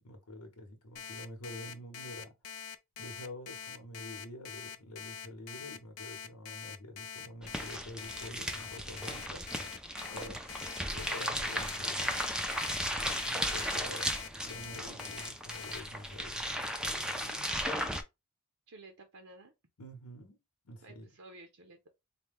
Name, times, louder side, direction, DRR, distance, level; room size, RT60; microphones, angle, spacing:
voice 1, 0.0-2.3 3.0-9.5 10.1-10.4 10.8-12.1 12.7-14.1 14.4-17.5 19.8-20.4 20.6-21.1, left 1 dB, 90° left, 1.0 m, -47 dB
Alarm, 1.0-15.8, left 7 dB, 60° left, 0.4 m, -44 dB
sound 1, 7.4-18.0, equal, 5° right, 0.4 m, -36 dB
voice 2, 18.7-19.5 20.8-21.9, right 2 dB, 60° right, 0.6 m, -53 dB
4.2 x 2.3 x 3.5 m
head